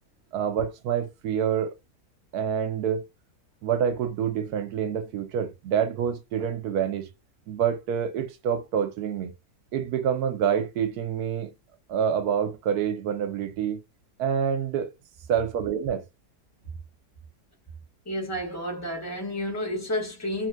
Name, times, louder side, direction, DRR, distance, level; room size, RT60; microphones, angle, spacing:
voice 1, 0.3-1.7 2.3-3.0 3.6-7.1 7.5-9.3 9.7-11.5 11.9-13.8 14.2-14.9 15.3-16.0, right 8 dB, 75° right, 1.1 m, -27 dB
voice 2, 18.0-20.5, left 1 dB, 15° left, 0.8 m, -30 dB
2.9 x 2.1 x 3.2 m
omnidirectional pair, 1.8 m